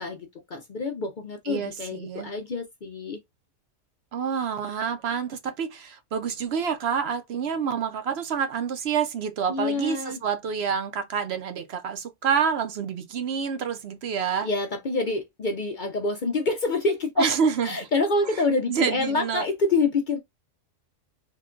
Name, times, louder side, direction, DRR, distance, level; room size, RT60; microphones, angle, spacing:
voice 1, 0.0-3.2 9.5-10.2 14.4-17.3 17.6-20.2, left 3 dB, 50° left, 0.6 m, -27 dB
voice 2, 1.5-2.3 4.1-14.5 17.2-17.7 18.7-19.4, right 6 dB, 65° right, 0.8 m, -27 dB
3.7 x 2.3 x 3.6 m
omnidirectional pair, 1.3 m